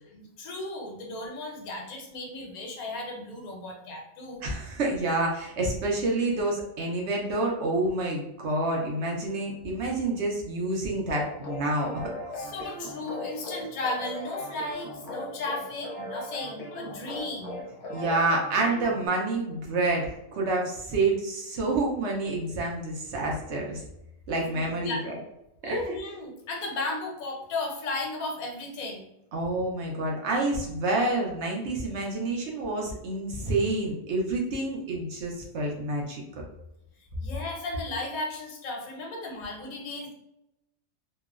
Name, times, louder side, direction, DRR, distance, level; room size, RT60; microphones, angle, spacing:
voice 1, 0.0-4.4 12.3-17.6 24.4-25.0 25.6-29.1 37.0-40.1, left 2 dB, 85° left, 0 dB, 1.1 m, -35 dB
voice 2, 4.4-11.9 17.9-23.8 24.3-25.1 25.6-26.0 29.3-36.2, right 2 dB, 65° right, -1 dB, 0.8 m, -28 dB
sound 1, 11.1-19.1, left 1 dB, 60° left, 0.8 m, -38 dB
2.9 x 2.0 x 2.3 m, 0.85 s
omnidirectional pair, 1.4 m